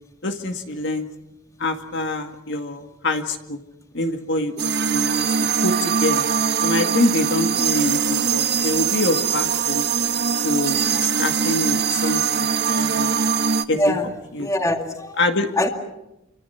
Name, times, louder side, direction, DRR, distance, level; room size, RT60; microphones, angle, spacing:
voice 1, 0.2-1.1 1.6-3.6 3.9-5.3 5.6-6.3 6.6-9.9 10.4-13.1 13.7-14.0 14.3-14.5 15.2-15.5, left 2 dB, 60° left, 5 dB, 2.0 m, -25 dB
sound 1, 4.6-13.6, right 6 dB, 55° right, 1.0 m, -22 dB
voice 2, 10.7-11.0 13.0-13.4 13.7-14.1 14.4-15.2 15.6-15.7, left 1 dB, 15° left, 4 dB, 2.1 m, -24 dB
28.5 x 25.0 x 5.8 m, 0.92 s
head